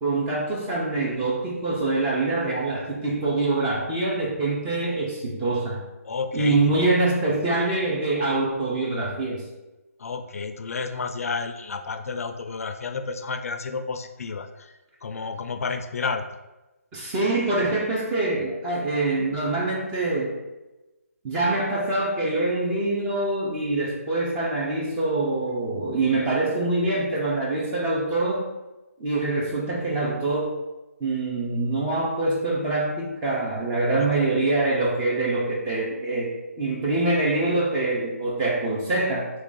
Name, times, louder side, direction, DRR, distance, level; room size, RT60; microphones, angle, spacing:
voice 1, 0.0-5.8 6.3-9.4 16.9-20.4 21.2-28.5 29.0-30.5 31.0-36.3 36.6-39.3, right 2 dB, 10° right, -4 dB, 0.3 m, -25 dB
voice 2, 6.0-6.9 10.0-14.7 15.0-16.2 34.0-34.1, left 4 dB, 65° left, 7 dB, 0.3 m, -31 dB
3.2 x 2.5 x 3.6 m, 1.1 s
hypercardioid pair, 165°, 8 cm